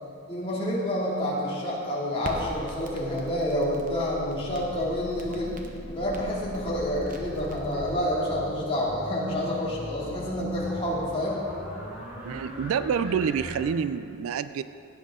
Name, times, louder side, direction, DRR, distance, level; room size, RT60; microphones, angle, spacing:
voice 1, 0.3-5.5 6.0-11.4, left 1 dB, 25° left, -6 dB, 2.5 m, -28 dB
Crackle, 2.2-7.9, right 1 dB, 40° right, 1.0 m, -41 dB
sound 1, 4.3-13.6, equal, 10° right, 2.8 m, -40 dB
voice 2, 12.2-14.6, right 7 dB, 70° right, 14 dB, 0.3 m, -27 dB
16.5 x 9.3 x 3.7 m, 2.5 s
head